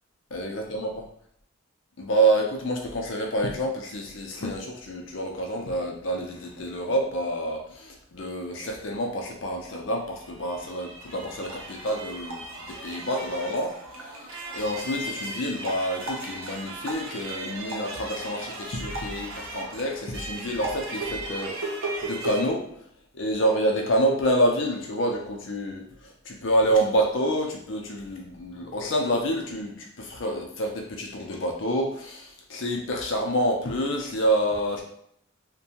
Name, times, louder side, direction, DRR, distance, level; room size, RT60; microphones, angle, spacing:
voice 1, 0.3-0.9 2.0-22.7 23.1-34.8, right 1 dB, 70° left, 1 dB, 0.6 m, -28 dB
sound 1, 10.1-22.4, right 2 dB, 90° right, 0.6 m, -36 dB
2.7 x 2.2 x 2.8 m, 0.69 s
head